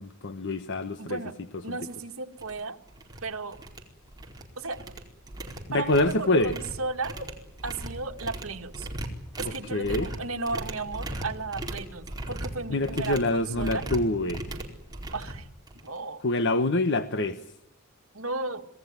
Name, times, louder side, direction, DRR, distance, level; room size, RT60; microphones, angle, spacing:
voice 1, 0.0-1.2 5.7-6.5 9.4-10.1 12.7-14.4 16.2-17.4, left 2 dB, 60° left, 10 dB, 1.2 m, -26 dB
voice 2, 1.0-1.4 1.6-2.8 3.2-3.6 4.6-4.9 5.7-7.3 7.6-8.9 9.4-13.9 15.1-15.5 15.8-16.2 18.1-18.6, right 3 dB, 75° right, 5 dB, 2.1 m, -34 dB
sound 1, 1.8-1.9 2.4-2.6 2.9-3.2 3.5-4.4 4.7-16.0, right 1 dB, 20° right, 4.6 m, -38 dB
26.5 x 19.0 x 9.6 m, 0.77 s
head